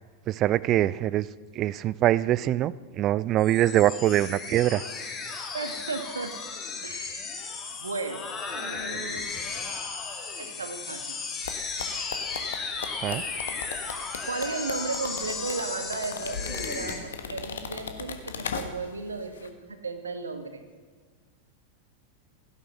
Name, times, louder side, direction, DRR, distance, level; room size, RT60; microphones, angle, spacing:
voice 1, 0.3-1.3 1.6-4.8 13.0-13.2, right 13 dB, 35° right, 20 dB, 0.5 m, -23 dB
sound 1, 3.4-17.0, left 4 dB, 25° left, 3.0 m, -35 dB
voice 2, 5.5-6.4 6.8-7.3 7.8-8.2 8.5-9.3 10.4-11.2 14.2-20.6, right 4 dB, 75° right, 8 dB, 1.8 m, -35 dB
sound 2, 11.4-19.0 19.3-19.5, left 6 dB, 65° left, 1.5 m, -37 dB
16.0 x 11.0 x 7.7 m, 1.5 s
figure-of-eight pair, 90°, 0 cm